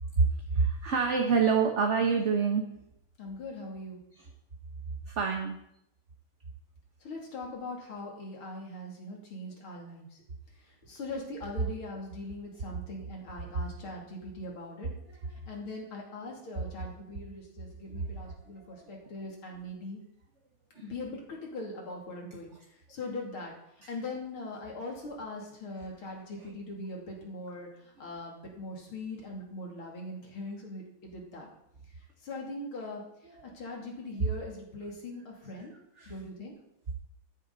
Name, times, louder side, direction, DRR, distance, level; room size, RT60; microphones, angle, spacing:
voice 1, 0.2-2.6 4.2-4.3 5.1-5.6 18.3-18.4 18.7-18.8 23.8-23.9 33.3-33.5 36.0-36.1, right 5 dB, 40° right, 3 dB, 1.3 m, -27 dB
voice 2, 3.2-4.0 7.0-10.1 10.6-14.9 15.5-20.0 20.8-22.5 22.9-23.5 23.9-31.5 32.2-33.0 33.4-35.7 36.1-36.5, left 2 dB, 90° left, -1 dB, 3.7 m, -41 dB
13.5 x 10.5 x 4.1 m, 0.76 s
omnidirectional pair, 2.3 m